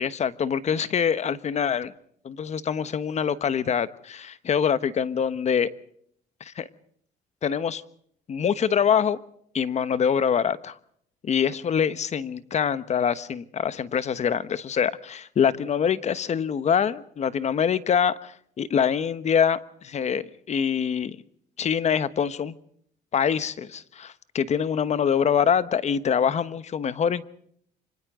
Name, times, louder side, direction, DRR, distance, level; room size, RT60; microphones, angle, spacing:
voice 1, 0.0-1.9 2.2-5.7 6.4-6.7 7.4-7.8 8.3-9.2 9.5-10.8 11.2-21.2 21.6-22.5 23.1-27.2, left 7 dB, 40° left, 1.2 m, -25 dB
29.0 x 25.0 x 3.8 m
cardioid pair, 110°, 17 cm